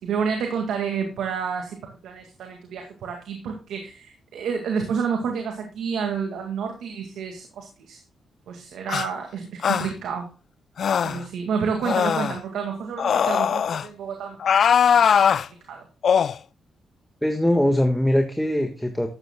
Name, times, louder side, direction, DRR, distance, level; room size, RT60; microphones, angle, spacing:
voice 1, 0.0-8.0 8.5-10.3 11.0-14.6 14.9-15.1 15.7-15.9, right 6 dB, 85° right, 3 dB, 1.9 m, -29 dB
sound 1, 8.9-9.1 9.6-9.9 10.8-11.2 11.8-12.4 13.0-13.8 14.4-15.4 16.0-16.3, left 7 dB, 65° left, 0.4 m, -20 dB
voice 2, 17.2-19.1, left 1 dB, ahead, 4 dB, 1.6 m, -21 dB
13.0 x 9.0 x 2.2 m, 0.35 s
cardioid pair, 75°, 0 cm